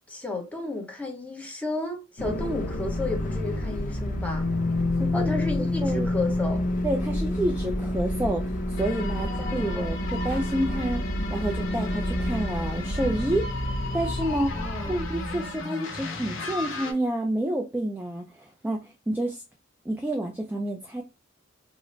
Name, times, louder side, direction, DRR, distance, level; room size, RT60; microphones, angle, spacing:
voice 1, 0.1-4.5 5.1-6.6 9.1-9.9 14.5-15.0, left 2 dB, 5° left, 0.8 m, -33 dB
sound 1, 2.2-15.6, left 1 dB, 45° left, 0.6 m, -29 dB
voice 2, 5.0-5.3 5.8-6.1 6.8-11.0 11.3-13.4 13.9-14.6 14.9-19.4 19.9-21.0, right 1 dB, 10° right, 0.3 m, -29 dB
sound 2, 8.8-16.9, left 2 dB, 70° left, 0.9 m, -36 dB
3.9 x 2.0 x 3.1 m
head